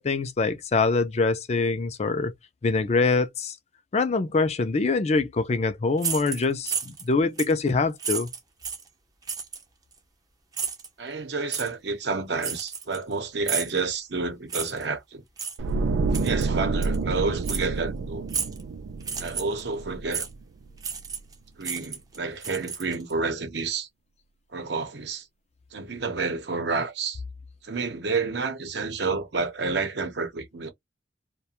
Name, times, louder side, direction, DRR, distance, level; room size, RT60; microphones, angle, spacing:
voice 1, 0.0-2.3 2.6-3.6 3.9-8.3, left 3 dB, 35° left, 0.4 m, -24 dB
sound 1, 6.0-7.1 7.4-7.6 8.0-8.9 9.3-9.6 10.5-10.9 11.5-11.7 12.4-13.1 13.5-13.8 14.5-14.9 15.4-15.6 16.1-16.5 16.8-17.0 17.4-17.7 18.3-18.6 19.0-19.6 20.1-20.3 20.8-21.3 21.6-23.1, right 6 dB, 20° right, 0.5 m, -32 dB
voice 2, 11.0-15.2 16.1-18.3 19.2-20.3 21.6-23.9 24.5-25.3 25.7-27.2 27.6-30.7, right 4 dB, 65° right, 0.8 m, -29 dB
sound 2, 15.6-20.7 21.0-21.2, right 4 dB, 85° right, 0.3 m, -28 dB
2.4 x 2.2 x 2.8 m
head